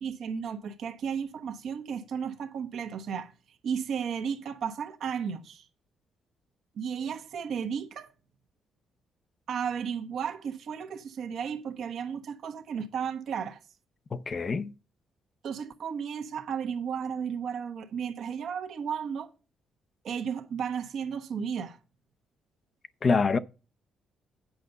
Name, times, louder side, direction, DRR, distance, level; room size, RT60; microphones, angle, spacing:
voice 1, 0.0-3.3 3.6-5.7 6.8-8.1 9.5-13.6 15.4-19.3 20.0-21.8, right 7 dB, 70° right, 1.2 m, -34 dB
voice 2, 14.1-14.7 23.0-23.4, left 4 dB, 40° left, 0.6 m, -25 dB
8.7 x 5.3 x 6.8 m
cardioid pair, 90°, 0 cm